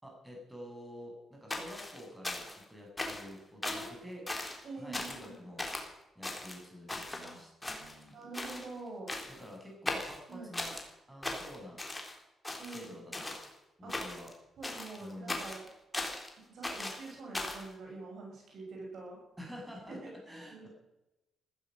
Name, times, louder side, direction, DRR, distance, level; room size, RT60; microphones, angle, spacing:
voice 1, 0.0-4.2 4.8-5.7 6.2-8.1 9.3-10.8 11.1-11.8 12.6-13.4 13.8-14.3 15.0-15.5 19.4-20.7, equal, 10° right, 0 dB, 7.4 m, -49 dB
sound 1, 1.5-2.6 3.0-3.3 3.6-3.9 4.3-4.6 4.9-5.3 5.6-5.9 6.2-7.3 7.6-8.1 8.3-8.7 9.1-9.5 9.9-10.8 11.2-12.2 12.4-13.5 13.9-14.3 14.6-16.3 16.6-17.7, left 2 dB, 15° left, 3.8 m, -38 dB
voice 2, 3.6-4.1 4.6-5.4 7.2-7.3 8.1-9.1 10.3-10.5 12.6-13.2 13.8-13.9 14.6-15.6 16.4-19.2 19.9-20.7, right 3 dB, 65° right, -1 dB, 6.9 m, -45 dB
15.5 x 14.0 x 6.5 m, 0.96 s
cardioid pair, 85°, 0 cm